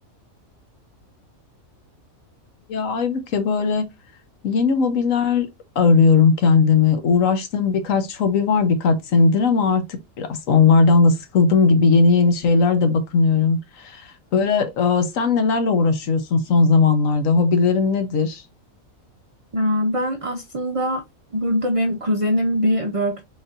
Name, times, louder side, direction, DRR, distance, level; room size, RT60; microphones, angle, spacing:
voice 1, 2.7-3.9 4.4-5.5 5.8-18.4, left 4 dB, 75° left, 1.2 m, -18 dB
voice 2, 19.5-21.0 21.3-23.2, equal, 55° right, 0.3 m, -22 dB
4.0 x 3.8 x 2.4 m
omnidirectional pair, 1.4 m